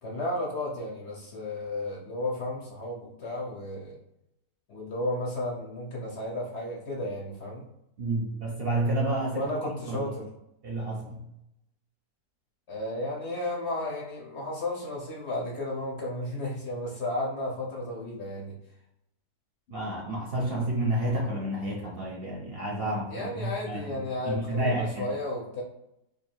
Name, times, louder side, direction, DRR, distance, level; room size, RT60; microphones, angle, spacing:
voice 1, 0.0-4.0 4.7-7.7 9.3-10.3 12.7-18.5 23.1-25.6, left 1 dB, 55° left, -2 dB, 0.9 m, -33 dB
voice 2, 8.0-10.1 10.6-11.2 19.7-24.0 24.2-25.1, right 1 dB, 50° right, -3 dB, 0.8 m, -30 dB
2.9 x 2.6 x 4.3 m, 0.85 s
omnidirectional pair, 1.6 m